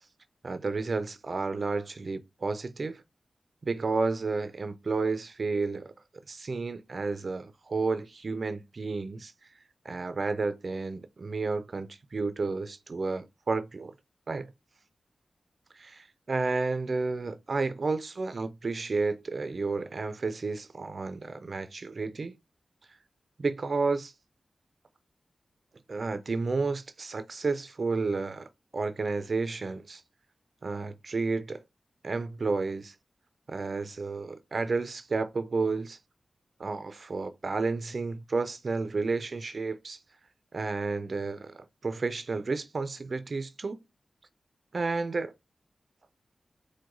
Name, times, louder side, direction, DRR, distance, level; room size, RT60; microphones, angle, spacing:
voice 1, 0.4-3.0 3.6-5.9 6.3-9.3 9.8-13.9 14.3-14.5 15.7-22.3 23.4-24.1 25.9-30.0 30.6-31.6 32.0-32.9 33.5-36.0 36.6-40.0 40.5-43.8 44.7-45.3, right 3 dB, 55° right, 0.4 m, -31 dB
4.6 x 2.1 x 3.9 m
wide cardioid pair, 75°, 0 cm